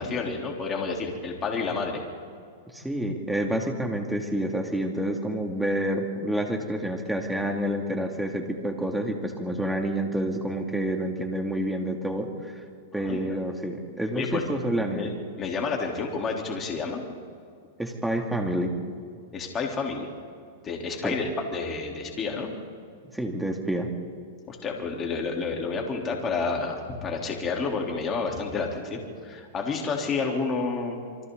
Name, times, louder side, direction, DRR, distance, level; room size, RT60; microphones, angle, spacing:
voice 1, 0.0-2.0 13.0-13.4 14.1-14.4 14.9-15.1 15.4-17.0 19.3-20.1 20.6-22.5 24.5-31.0, left 4 dB, 25° left, 0 dB, 3.8 m, -30 dB
voice 2, 2.7-12.6 12.9-15.1 17.8-18.7 21.0-21.1 23.1-23.9, right 1 dB, 5° right, 2 dB, 2.7 m, -28 dB
27.5 x 24.5 x 4.1 m, 2.2 s
hypercardioid pair, 130°, 0 cm